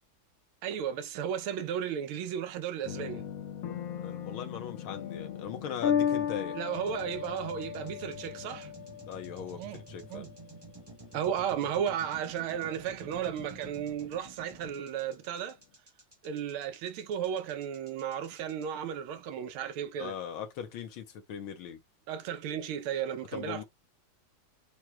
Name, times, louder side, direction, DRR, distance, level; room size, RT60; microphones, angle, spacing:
voice 1, 0.6-3.2 6.5-8.7 9.5-9.8 10.1-10.3 11.1-15.6 16.2-20.1 22.1-23.6, right 9 dB, 90° right, 1.6 m, -34 dB
sound 1, 2.8-11.9, left 8 dB, 55° left, 1.0 m, -36 dB
voice 2, 4.0-6.6 9.1-10.3 20.0-21.8 23.3-23.6, left 8 dB, 80° left, 1.9 m, -39 dB
sound 2, 6.7-18.6, right 2 dB, 45° right, 0.3 m, -50 dB
7.6 x 3.0 x 2.3 m
omnidirectional pair, 2.2 m